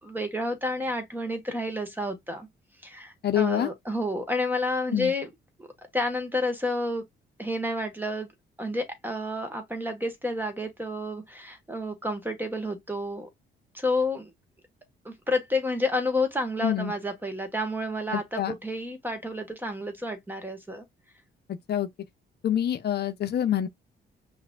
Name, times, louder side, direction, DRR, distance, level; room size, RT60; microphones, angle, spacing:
voice 1, 0.0-2.5 2.8-5.3 5.9-7.0 7.4-8.3 8.6-13.3 13.7-14.3 15.0-20.8, left 1 dB, 10° right, 1.1 m, -30 dB
voice 2, 3.2-3.7 4.9-5.1 16.6-16.9 18.1-18.5 21.7-21.9 22.4-23.7, left 10 dB, 55° left, 0.6 m, -26 dB
5.6 x 2.5 x 2.2 m
cardioid pair, 90°, 20 cm